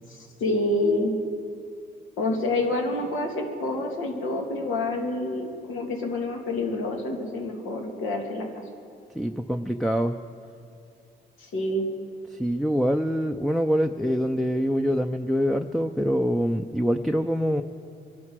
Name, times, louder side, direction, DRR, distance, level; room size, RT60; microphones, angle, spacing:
voice 1, 0.1-1.1 2.2-8.5 11.4-11.9, left 2 dB, 80° left, 1 dB, 2.4 m, -27 dB
voice 2, 9.1-10.2 12.3-17.6, equal, ahead, 6 dB, 0.5 m, -25 dB
24.5 x 12.0 x 4.7 m, 2.5 s
cardioid pair, 90°, 20 cm